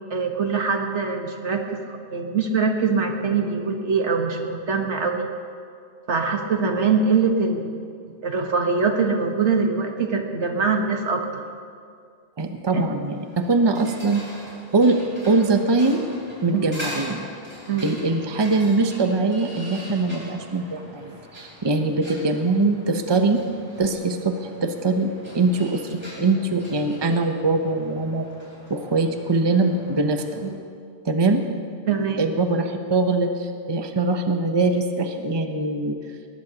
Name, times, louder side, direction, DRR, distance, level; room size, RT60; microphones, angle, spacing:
voice 1, 0.1-5.3 6.1-7.7 8.2-11.4 12.7-12.8 16.5-16.6 17.7-17.9 30.4-30.5 31.9-32.2, right 5 dB, 80° right, 4 dB, 1.6 m, -23 dB
voice 2, 12.4-14.2 14.7-15.0 15.3-16.1 16.4-17.3 17.8-23.4 23.8-28.3 28.7-30.4 31.0-31.4 32.2-35.9, right 3 dB, 25° right, 5 dB, 0.8 m, -22 dB
sound 1, 13.1-30.5, equal, 10° right, 4.1 m, -42 dB
20.0 x 19.5 x 2.9 m, 2.3 s
omnidirectional pair, 1.2 m